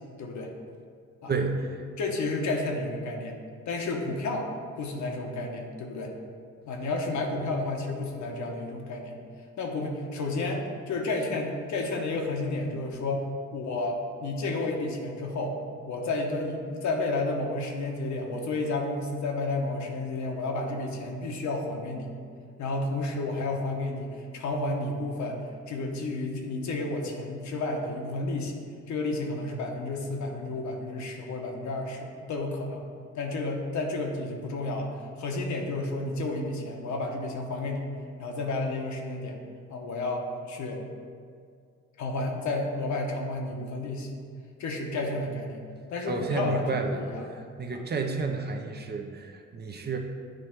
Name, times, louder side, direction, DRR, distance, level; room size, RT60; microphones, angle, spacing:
voice 1, 0.2-0.5 1.2-1.3 2.0-3.4 3.7-4.5 4.8-6.1 6.6-9.2 9.6-15.6 15.9-22.1 22.6-25.4 25.7-28.6 28.9-32.9 33.1-37.9 38.2-39.4 39.7-40.8 42.0-44.3 44.6-45.6 45.9-47.4 47.7-47.8, left 2 dB, 70° left, 1 dB, 1.0 m, -31 dB
voice 2, 1.3-1.8 46.1-47.0 47.3-50.0, right 4 dB, 35° right, 3 dB, 0.6 m, -31 dB
8.8 x 3.1 x 4.5 m, 2.2 s
cardioid pair, 90°, 30 cm